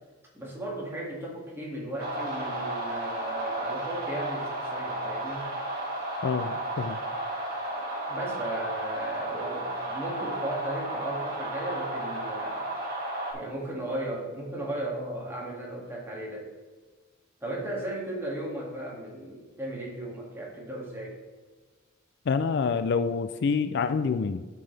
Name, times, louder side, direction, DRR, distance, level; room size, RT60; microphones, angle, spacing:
voice 1, 0.3-5.5 8.1-12.7 13.3-16.5 17.4-21.2, right 1 dB, 10° right, -4 dB, 2.2 m, -36 dB
sound 1, 2.0-13.3, right 1 dB, 50° right, 2.7 m, -33 dB
voice 2, 6.2-7.0 22.3-24.5, left 5 dB, 55° left, 11 dB, 0.4 m, -27 dB
12.5 x 5.8 x 3.4 m, 1.3 s
head